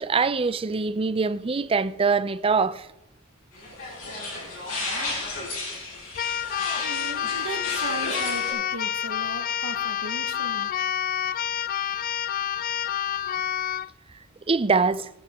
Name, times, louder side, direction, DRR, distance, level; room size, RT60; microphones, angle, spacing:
voice 1, 0.0-2.9 14.5-15.1, right 4 dB, 25° right, 0.5 m, -23 dB
sound 1, 3.5-8.5, left 2 dB, 70° left, 5.9 m, -33 dB
Keyboard (musical), 6.1-13.9, left 10 dB, 40° left, 0.4 m, -28 dB
voice 2, 6.8-10.7, right 2 dB, 85° right, 1.3 m, -37 dB
22.0 x 9.0 x 3.6 m
head